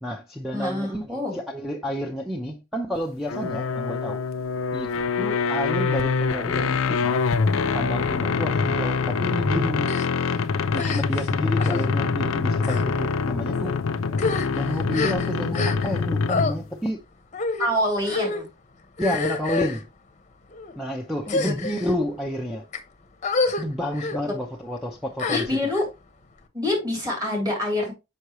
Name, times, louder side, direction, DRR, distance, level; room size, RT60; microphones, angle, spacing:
voice 1, 0.0-4.2 4.7-4.9 5.2-7.2 7.7-9.9 10.7-13.8 14.5-17.0 18.0-18.2 19.0-19.9 20.8-22.6 23.6-25.5, equal, ahead, 0.7 m, -30 dB
voice 2, 0.5-1.3 17.6-18.5 21.3-21.5 24.3-24.4 25.3-25.9 26.5-27.9, left 1 dB, 20° right, 3.1 m, -26 dB
sound 1, 3.3-16.6, left 5 dB, 70° left, 0.5 m, -25 dB
sound 2, 9.8-10.1 10.7-11.3 11.6-11.9 12.6-12.8 13.5-13.7 14.1-16.0 16.3-16.5 17.3-17.7 18.1-18.4 19.0-19.8 20.5-20.7 21.2-21.9 22.5-22.8 23.2-23.6 24.0-24.2 25.2-25.8, left 3 dB, 35° left, 0.9 m, -28 dB
6.5 x 5.6 x 3.0 m
head